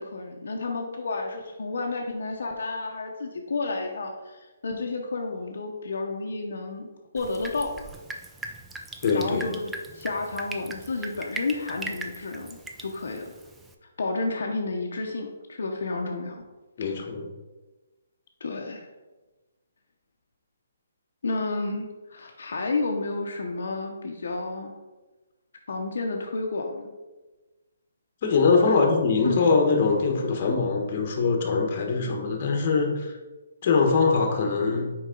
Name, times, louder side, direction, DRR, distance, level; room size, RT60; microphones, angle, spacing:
voice 1, 0.0-6.9 7.1-7.7 9.1-13.3 14.0-16.4 18.4-18.9 21.2-24.7 25.7-26.9 28.5-28.9 29.2-29.5, left 3 dB, 70° left, 1 dB, 0.8 m, -31 dB
Drip, 7.2-13.7, right 2 dB, 5° right, 0.4 m, -40 dB
voice 2, 9.0-9.5 16.8-17.3 28.2-33.1 33.6-34.9, left 4 dB, 40° left, 3 dB, 1.2 m, -23 dB
6.3 x 4.7 x 3.8 m, 1.2 s
hypercardioid pair, 155°, 0 cm